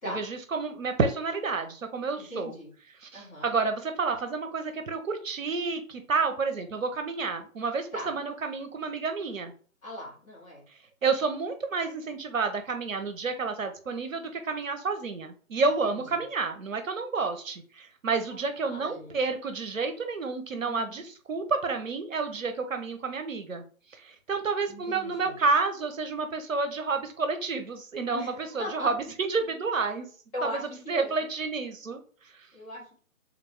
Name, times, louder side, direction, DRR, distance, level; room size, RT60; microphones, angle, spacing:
voice 1, 0.0-2.5 3.0-9.5 10.7-23.6 23.9-28.9 29.2-30.1 30.9-32.5, right 4 dB, 65° right, 7 dB, 0.8 m, -30 dB
voice 2, 2.3-2.7 3.1-3.5 7.9-8.1 9.8-10.6 15.8-16.2 18.3-19.2 20.6-21.0 24.7-25.4 28.1-28.9 30.3-31.3 32.5-33.0, left 1 dB, 20° left, -7 dB, 1.9 m, -39 dB
3.8 x 2.5 x 4.7 m, 0.43 s
figure-of-eight pair, 145°, 43 cm